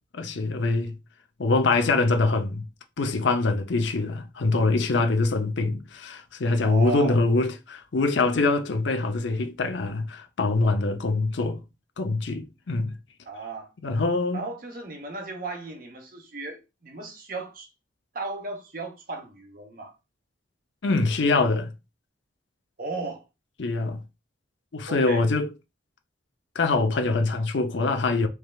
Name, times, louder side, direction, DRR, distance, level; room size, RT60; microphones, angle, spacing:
voice 1, 0.1-1.0 1.4-2.7 3.0-11.6 12.0-12.9 13.8-14.4 20.8-21.7 23.6-24.0 24.7-25.5 26.5-28.3, left 3 dB, 70° left, 0.7 m, -24 dB
voice 2, 6.6-7.2 13.3-13.7 14.3-17.7 18.1-19.9 22.8-23.2 24.9-25.2, right 3 dB, 45° right, 0.9 m, -35 dB
4.8 x 3.2 x 2.3 m
head